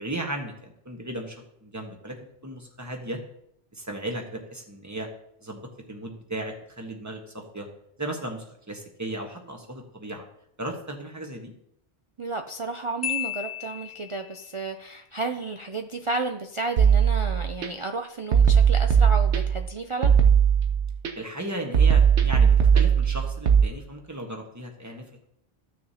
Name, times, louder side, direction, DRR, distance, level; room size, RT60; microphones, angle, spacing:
voice 1, 0.0-2.1 2.4-3.2 3.7-5.1 5.4-5.6 5.9-7.7 8.0-10.3 10.6-11.5 21.1-25.3, right 1 dB, 15° right, 2 dB, 1.3 m, -35 dB
voice 2, 12.2-20.1, right 3 dB, 45° right, 4 dB, 0.4 m, -32 dB
Marimba xylophone, 13.0-14.4, left 11 dB, 25° left, 0.4 m, -33 dB
sound 1, 16.8-17.7 18.3-19.7 20.0-21.1 21.7-23.6, right 7 dB, 85° right, 1.2 m, -19 dB
14.0 x 6.5 x 2.8 m, 0.75 s
omnidirectional pair, 1.1 m